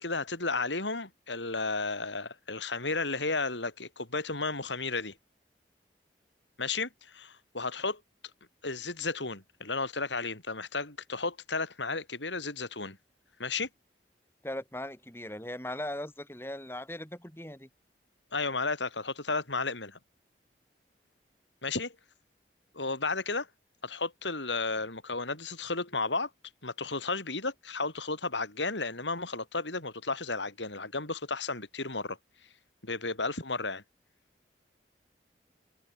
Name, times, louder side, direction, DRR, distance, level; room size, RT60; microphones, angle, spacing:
voice 1, 0.0-5.1 6.6-8.0 8.6-13.0 13.4-13.7 18.3-20.0 21.6-21.9 22.7-23.5 23.8-26.3 26.6-32.2 32.8-33.8, left 3 dB, 90° left, 6.5 m, -33 dB
voice 2, 14.4-17.7, left 1 dB, 15° left, 5.6 m, -39 dB
head